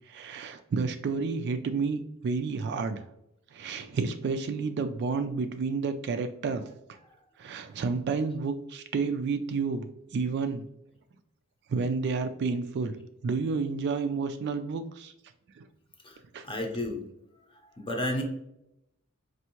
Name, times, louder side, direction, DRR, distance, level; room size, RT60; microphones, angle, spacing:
voice 1, 0.0-3.0 3.5-6.6 7.4-10.7 11.7-13.0 13.2-15.1 15.6-15.7 16.3-16.5, right 4 dB, 55° right, 8 dB, 0.3 m, -30 dB
voice 2, 16.4-17.0 17.8-18.2, left 1 dB, 25° left, 2 dB, 0.7 m, -31 dB
4.4 x 2.6 x 2.9 m, 0.83 s
head